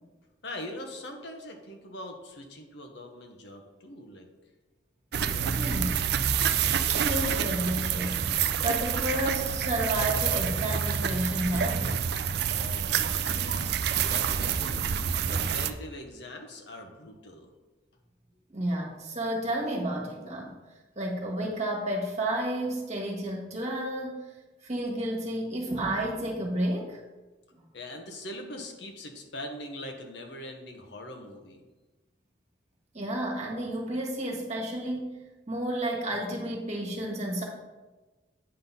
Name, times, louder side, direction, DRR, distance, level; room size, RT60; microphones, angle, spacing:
voice 1, 0.4-4.3 5.2-6.0 12.5-14.8 15.3-17.5 27.7-31.6, left 1 dB, 60° left, 3 dB, 1.1 m, -42 dB
sound 1, 5.1-15.7, right 7 dB, 55° right, 0.4 m, -28 dB
voice 2, 5.5-5.9 6.6-11.9 18.5-20.5 20.9-24.3 24.6-27.0 27.5-27.6 32.9-35.2 35.5-37.4, right 1 dB, 35° right, -1 dB, 1.5 m, -31 dB
8.9 x 3.9 x 5.5 m, 1.2 s
head